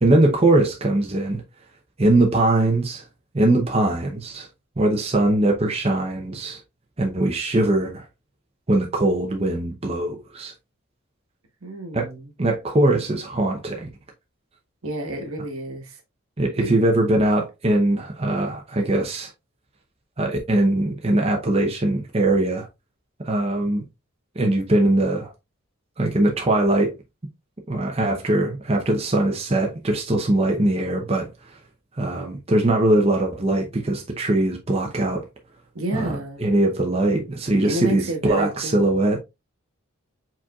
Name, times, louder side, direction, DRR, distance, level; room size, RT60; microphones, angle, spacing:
voice 1, 0.0-1.4 2.0-3.0 3.3-4.5 4.8-6.6 7.0-8.0 8.7-10.5 11.9-12.1 12.4-13.9 16.4-19.3 20.2-22.7 23.2-23.8 24.4-25.3 26.0-26.9 27.7-31.3 32.0-35.2 35.9-39.2, right 1 dB, 25° right, 0.7 m, -21 dB
voice 2, 11.6-12.3 14.8-16.0 16.6-16.7 35.7-36.5 37.6-39.1, right 1 dB, 80° right, 1.4 m, -30 dB
4.9 x 4.3 x 2.4 m
head